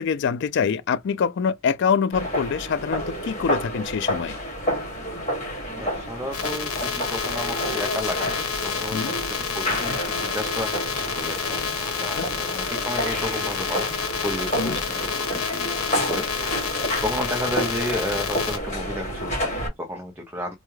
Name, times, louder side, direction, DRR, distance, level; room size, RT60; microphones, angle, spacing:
voice 1, 0.0-4.4 8.9-9.1 12.1-12.3 14.5-14.8, left 6 dB, 55° left, 0.3 m, -25 dB
sound 1, 2.1-19.7, equal, 30° left, 2.2 m, -30 dB
voice 2, 5.8-11.4 11.8-13.9 14.2-20.5, left 1 dB, 10° right, 0.6 m, -32 dB
sound 2, 6.3-18.6, left 6 dB, 90° left, 0.9 m, -29 dB
4.4 x 2.2 x 3.1 m
head